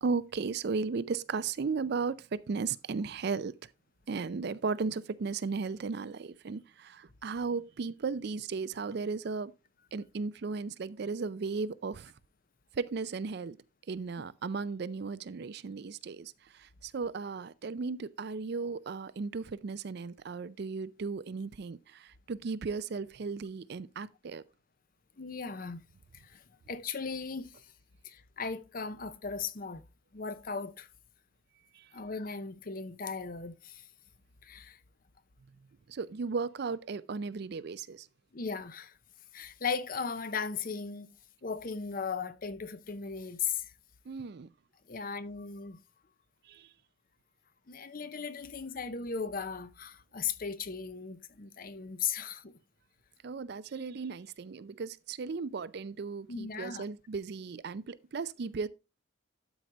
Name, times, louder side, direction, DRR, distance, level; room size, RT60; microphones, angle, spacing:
voice 1, 0.0-3.7 4.1-9.5 9.9-12.1 12.7-13.6 13.9-24.4 31.7-31.9 35.9-38.1 44.1-44.5 46.5-46.7 53.2-58.7, right 4 dB, 55° right, 0.4 m, -36 dB
voice 2, 25.2-25.8 26.1-27.5 28.0-29.8 30.1-30.9 31.9-33.8 34.4-34.8 38.3-38.9 39.3-41.1 41.4-43.7 44.9-45.8 47.7-52.5 56.3-56.8, left 5 dB, 45° left, 0.7 m, -37 dB
12.0 x 4.8 x 3.8 m
head